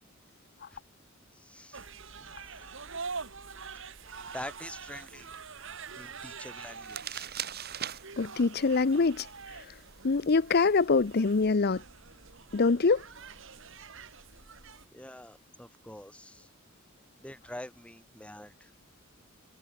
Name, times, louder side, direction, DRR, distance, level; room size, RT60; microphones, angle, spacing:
voice 1, 1.3-1.9 2.2-2.7 4.3-5.3 6.0-7.3 14.9-16.5 17.2-18.7, left 1 dB, 5° left, 2.0 m, -46 dB
sound 1, 1.7-14.9, right 5 dB, 65° right, 2.2 m, -45 dB
sound 2, 4.0-11.4, right 10 dB, 50° right, 3.2 m, -45 dB
voice 2, 8.2-9.3 9.5-9.6 10.0-11.8 12.5-13.0, left 4 dB, 50° left, 0.6 m, -24 dB
head